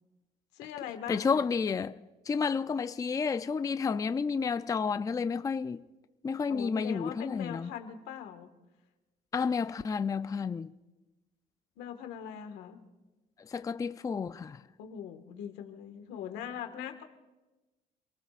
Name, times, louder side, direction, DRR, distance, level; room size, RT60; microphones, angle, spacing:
voice 1, 0.5-1.5 6.5-8.5 11.8-12.8 14.8-17.0, left 9 dB, 90° left, 1.7 m, -41 dB
voice 2, 1.1-2.0 2.3-5.8 6.2-7.7 9.3-10.7 13.5-14.6, left 5 dB, 20° left, 0.4 m, -31 dB
28.5 x 18.5 x 2.5 m
cardioid pair, 110°, 17 cm